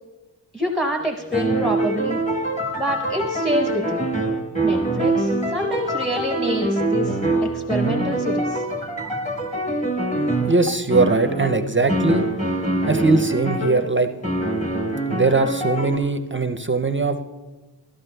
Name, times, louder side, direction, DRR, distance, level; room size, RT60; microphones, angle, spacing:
voice 1, 0.5-2.2 2.8-4.1 4.6-7.2 7.5-8.6, equal, ahead, 2 dB, 0.7 m, -26 dB
sound 1, 0.7-13.9 14.2-16.0, right 1 dB, 15° left, 1.1 m, -24 dB
voice 2, 10.5-12.2 12.9-14.1 15.1-17.2, right 3 dB, 30° right, 7 dB, 0.5 m, -20 dB
14.0 x 13.5 x 2.2 m, 1.2 s
wide cardioid pair, 85°, 43 cm